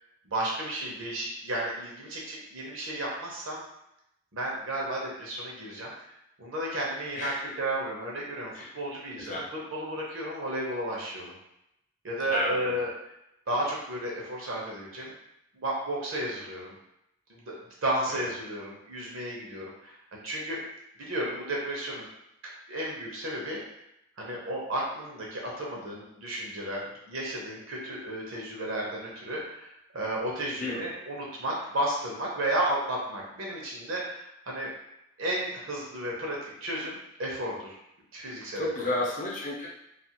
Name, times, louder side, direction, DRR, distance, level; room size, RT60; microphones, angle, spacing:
voice 1, 0.2-3.6 4.3-6.1 6.4-11.3 12.0-12.9 13.5-15.1 15.5-16.8 17.3-17.5 17.8-20.6 21.0-22.0 22.7-23.6 24.2-34.7 35.2-37.8 38.1-38.9, right 1 dB, 75° right, -3 dB, 0.7 m, -33 dB
voice 2, 12.3-12.7 18.1-18.3 30.6-30.8 38.6-39.7, left 1 dB, 35° left, -3 dB, 0.5 m, -31 dB
2.4 x 2.4 x 2.8 m, 0.83 s
head